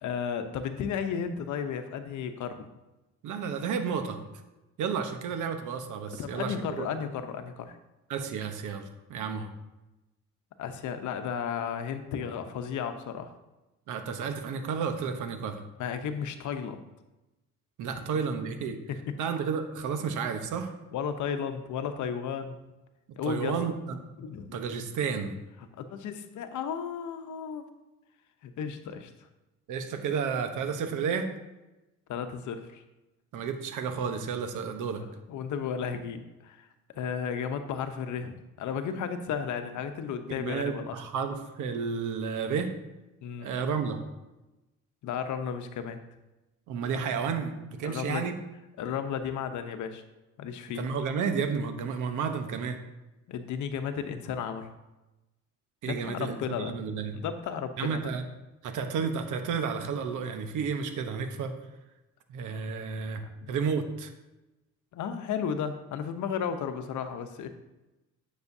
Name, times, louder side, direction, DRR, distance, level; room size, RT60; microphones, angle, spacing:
voice 1, 0.0-2.7 6.2-7.8 10.6-13.3 15.8-16.8 18.0-18.1 18.9-19.0 20.9-22.6 23.2-23.5 24.2-24.6 25.8-27.7 28.4-29.1 32.1-32.8 35.3-36.7 36.9-41.0 43.2-43.5 45.0-46.0 47.8-48.3 48.8-50.0 50.4-50.9 53.3-54.7 55.8-56.8 57.1-58.1 63.4-63.5 64.9-67.5, left 7 dB, 75° left, 8 dB, 0.8 m, -34 dB
voice 2, 3.2-4.2 4.8-6.9 8.1-8.8 9.1-9.5 13.9-15.6 17.8-18.8 19.2-20.7 23.2-24.0 24.5-25.4 29.7-31.3 33.3-35.0 40.3-42.7 43.4-44.0 46.7-48.4 50.7-52.8 55.8-57.1 57.8-58.3 58.6-61.5 62.3-63.2 63.5-64.1, right 6 dB, 80° right, 7 dB, 1.0 m, -31 dB
9.5 x 6.4 x 2.7 m, 1.0 s
cardioid pair, 90°, 30 cm